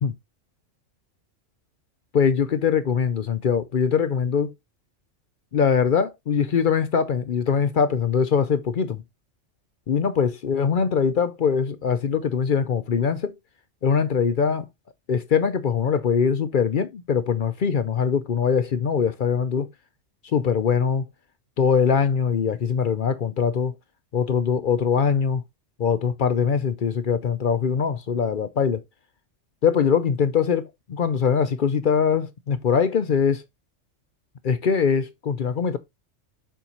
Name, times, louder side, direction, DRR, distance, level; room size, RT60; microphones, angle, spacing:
voice 1, 2.1-4.5 5.5-9.0 9.9-13.3 13.8-14.7 15.1-19.7 20.3-21.1 21.6-23.7 24.1-25.4 25.8-28.8 29.6-33.4 34.4-35.8, left 6 dB, 55° left, 0.6 m, -22 dB
6.9 x 5.5 x 2.9 m
omnidirectional pair, 1.3 m